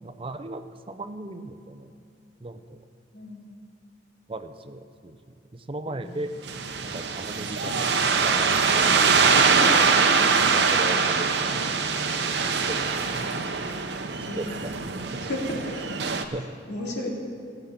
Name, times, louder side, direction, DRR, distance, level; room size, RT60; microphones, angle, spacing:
voice 1, 0.0-2.0 2.4-2.9 4.3-6.3 6.8-9.4 10.4-11.7 12.3-13.3 14.4-15.3 16.0-16.6, right 1 dB, 30° right, 10 dB, 0.6 m, -38 dB
voice 2, 3.1-3.5 5.8-6.1 9.3-10.2 14.3-14.5 15.2-15.8 16.3-16.4 16.7-17.1, left 1 dB, 75° left, -2 dB, 2.6 m, -34 dB
sound 1, 6.5-16.2, right 5 dB, 75° right, 0.8 m, -23 dB
17.0 x 8.1 x 5.8 m, 2.5 s
head